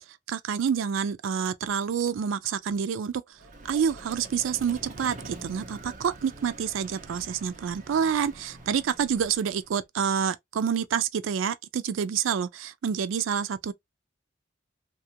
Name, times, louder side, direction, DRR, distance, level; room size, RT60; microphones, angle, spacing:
voice 1, 0.3-3.2 3.6-13.7, right 7 dB, 80° right, 0.4 m, -28 dB
Vehicle, 3.3-9.8, right 2 dB, 40° right, 0.6 m, -45 dB
2.8 x 2.3 x 2.7 m
head